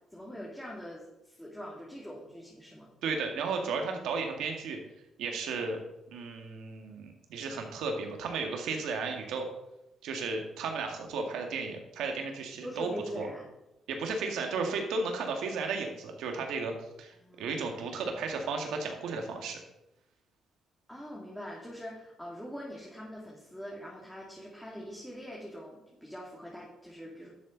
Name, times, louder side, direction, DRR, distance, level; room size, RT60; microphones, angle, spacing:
voice 1, 0.1-2.9 12.6-13.5 17.1-17.9 20.9-27.3, equal, 5° left, -4 dB, 2.5 m, -43 dB
voice 2, 3.0-4.8 5.2-5.8 6.1-9.5 10.0-12.9 13.2-13.3 13.9-16.7 17.0-19.6, right 4 dB, 85° right, 3 dB, 1.9 m, -34 dB
11.5 x 7.1 x 4.0 m, 0.90 s
cardioid pair, 90°, 0 cm